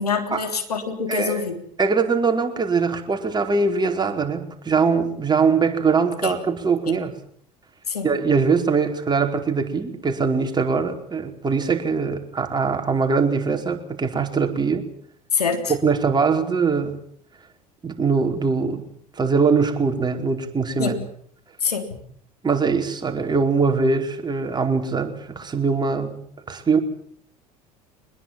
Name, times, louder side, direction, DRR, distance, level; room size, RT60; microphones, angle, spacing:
voice 1, 0.0-1.6 6.2-6.3 6.9-7.0 7.9-8.1 15.3-15.7 20.8-21.0 21.6-22.0, left 5 dB, 85° left, 6 dB, 3.6 m, -25 dB
voice 2, 1.1-1.4 1.8-7.1 8.0-14.9 15.8-17.0 17.8-18.8 19.2-20.9 22.4-26.2 26.5-26.8, right 5 dB, 20° right, 4 dB, 4.8 m, -22 dB
24.0 x 21.0 x 7.5 m, 0.62 s
hypercardioid pair, 70°, 19 cm